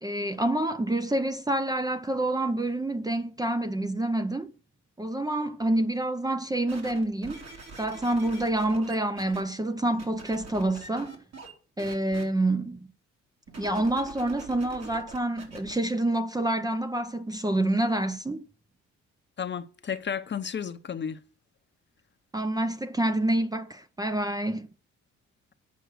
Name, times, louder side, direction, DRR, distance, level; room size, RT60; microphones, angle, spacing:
voice 1, 0.0-4.5 5.0-7.4 7.8-11.2 11.8-12.9 13.6-18.4 22.3-24.7, right 1 dB, 15° right, 0.6 m, -27 dB
sound 1, 6.7-9.4 10.0-11.5 11.8-12.2 13.5-15.7 16.4-16.5, right 4 dB, 60° right, 3.4 m, -44 dB
voice 2, 19.4-21.2, left 7 dB, 35° left, 0.9 m, -32 dB
8.3 x 5.3 x 7.8 m
cardioid pair, 90°, 30 cm